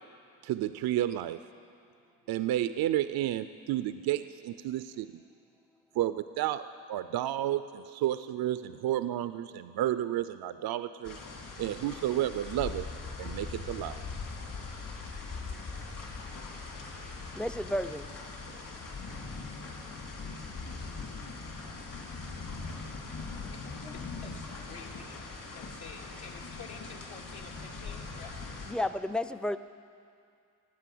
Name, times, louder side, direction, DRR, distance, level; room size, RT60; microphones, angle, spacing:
voice 1, 0.4-1.4 2.3-5.2 6.0-11.2 11.6-12.9 13.2-14.0, right 13 dB, 75° right, 12 dB, 0.5 m, -31 dB
sound 1, 11.0-28.7, left 4 dB, 60° left, 2.9 m, -41 dB
voice 2, 17.3-18.1 28.7-29.6, left 1 dB, 5° left, 11 dB, 0.4 m, -32 dB
voice 3, 23.4-28.4, left 5 dB, 80° left, -1 dB, 2.1 m, -49 dB
18.0 x 9.0 x 7.7 m, 2.4 s
cardioid pair, 100°, 37 cm